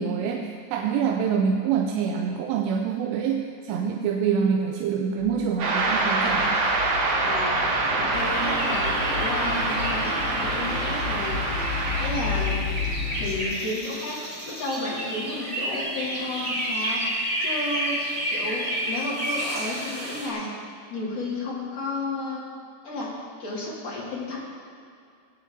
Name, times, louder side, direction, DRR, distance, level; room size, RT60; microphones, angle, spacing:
voice 1, 0.0-6.7, right 6 dB, 85° right, 2 dB, 2.7 m, -26 dB
sound 1, 5.2-13.4, left 5 dB, 70° left, 1.4 m, -33 dB
sound 2, 5.6-12.1, right 2 dB, 65° right, 5.4 m, -25 dB
voice 2, 7.2-7.6 8.0-11.7 12.0-12.7 13.2-14.2 14.4-18.0 18.3-20.5 20.9-22.4 22.8-23.1 23.4-24.4, left 2 dB, 40° left, -6 dB, 3.1 m, -32 dB
sound 3, 8.1-20.3, equal, 20° right, 2.0 m, -31 dB
18.0 x 9.3 x 3.7 m, 2.4 s
omnidirectional pair, 5.1 m